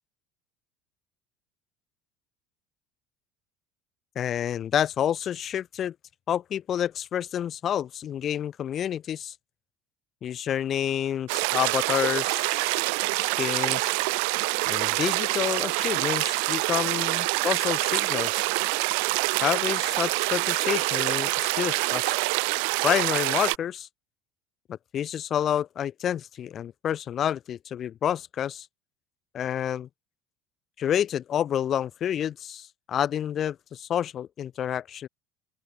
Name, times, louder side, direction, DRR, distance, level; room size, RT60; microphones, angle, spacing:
voice 1, 4.1-5.9 6.3-9.3 10.2-12.8 13.1-13.9 14.6-18.5 19.4-22.2 22.8-23.9 24.7-28.7 29.3-29.9 30.8-35.1, left 10 dB, 45° left, 4.4 m, -29 dB
sound 1, 11.3-23.6, right 33 dB, 65° right, 1.9 m, -26 dB
open air
figure-of-eight pair, 65°, 0 cm